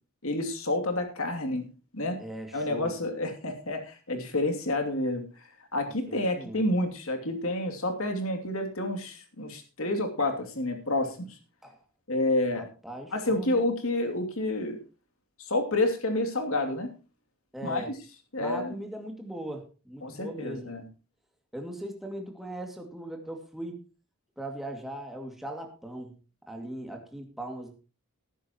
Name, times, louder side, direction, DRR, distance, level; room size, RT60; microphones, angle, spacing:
voice 1, 0.2-1.7 1.9-2.2 2.5-5.2 5.7-11.3 12.1-12.7 13.1-14.8 15.4-16.9 17.6-17.8 18.3-18.7 20.0-20.8, left 2 dB, 70° left, 4 dB, 2.7 m, -29 dB
voice 2, 2.2-2.9 6.1-6.6 11.6-11.8 12.5-13.6 17.5-17.9 18.4-20.7 21.5-23.8 24.4-26.1 26.5-27.7, right 1 dB, ahead, 2 dB, 2.3 m, -39 dB
19.0 x 10.5 x 3.0 m, 0.33 s
head